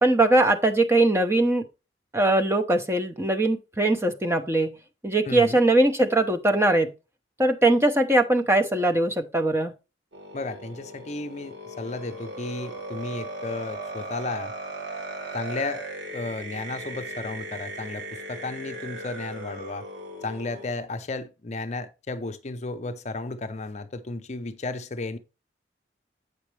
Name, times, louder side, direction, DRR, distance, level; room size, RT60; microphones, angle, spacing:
voice 1, 0.0-1.6 2.1-4.7 5.0-6.9 7.4-9.7, right 2 dB, 15° right, 0.7 m, -21 dB
voice 2, 5.3-5.6 10.3-14.5 15.3-15.8 16.1-19.8 20.2-25.2, left 3 dB, 40° left, 0.6 m, -33 dB
sound 1, 10.1-20.7, right 2 dB, 85° right, 2.2 m, -37 dB
8.1 x 5.8 x 3.2 m
head